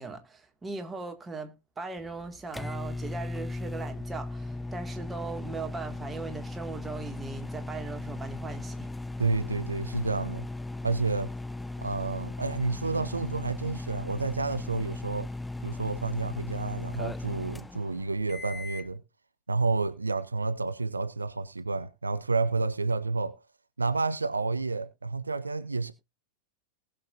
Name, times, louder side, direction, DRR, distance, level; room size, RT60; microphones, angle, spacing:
voice 1, 0.0-8.9, right 4 dB, 15° right, 2.1 m, -39 dB
sound 1, 2.0-18.9, left 2 dB, 5° left, 0.5 m, -37 dB
voice 2, 9.2-10.4 10.8-11.3 11.8-15.3 15.6-19.0 19.5-23.4 23.8-25.9, right 3 dB, 80° right, 0.6 m, -30 dB
19.5 x 6.8 x 2.6 m
figure-of-eight pair, 90°, 0 cm